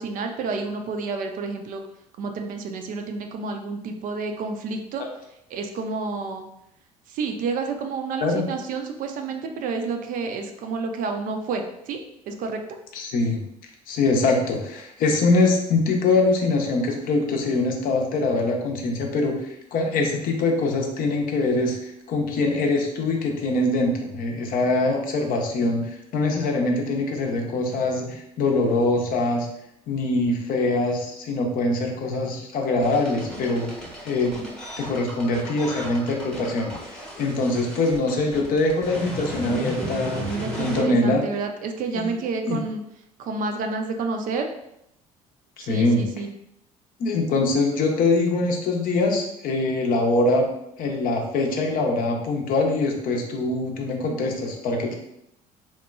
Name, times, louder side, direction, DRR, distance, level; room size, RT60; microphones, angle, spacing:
voice 1, 0.0-1.8 2.2-5.0 5.5-6.5 7.1-12.0 12.3-12.6 39.5-42.8 43.2-44.5 45.6-46.3, right 4 dB, 45° right, 4 dB, 0.4 m, -30 dB
voice 2, 12.9-13.4 13.9-29.5 29.9-34.4 34.8-40.3 40.6-41.2 41.9-42.1 42.5-42.6 45.6-46.0 47.0-50.5 50.8-55.0, left 2 dB, 50° left, 1 dB, 0.6 m, -23 dB
sound 1, 32.8-40.8, equal, 5° left, 0.8 m, -35 dB
2.9 x 2.1 x 2.3 m, 0.79 s
hypercardioid pair, 60°, 19 cm